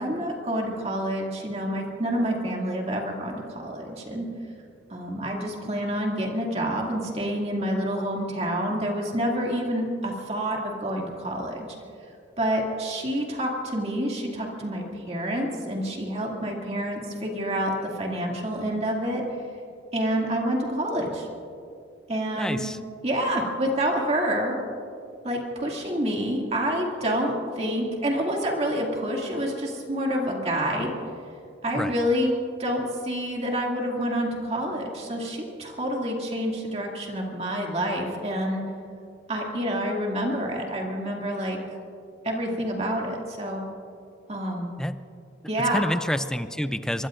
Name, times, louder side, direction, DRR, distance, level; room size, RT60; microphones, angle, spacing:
voice 1, 0.0-4.3 4.9-11.7 12.4-19.2 19.9-21.3 22.1-22.6 23.0-24.6 25.2-30.9 31.6-32.3 32.6-38.6 39.3-41.6 42.2-43.6 44.3-44.7 45.5-45.8, equal, 35° right, -1 dB, 2.4 m, -28 dB
voice 2, 22.4-22.8 31.7-31.9 44.8-45.0 45.7-47.1, equal, 5° left, 11 dB, 0.4 m, -28 dB
25.0 x 22.5 x 2.6 m, 2.5 s
head